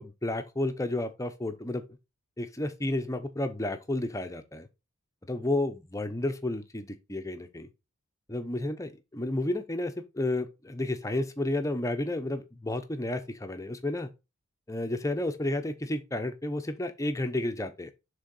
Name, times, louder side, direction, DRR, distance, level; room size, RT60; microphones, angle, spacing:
voice 1, 0.0-1.9 2.4-4.7 5.3-7.7 8.3-14.1 14.7-17.9, left 1 dB, 15° left, 0.7 m, -31 dB
6.3 x 3.7 x 5.4 m
head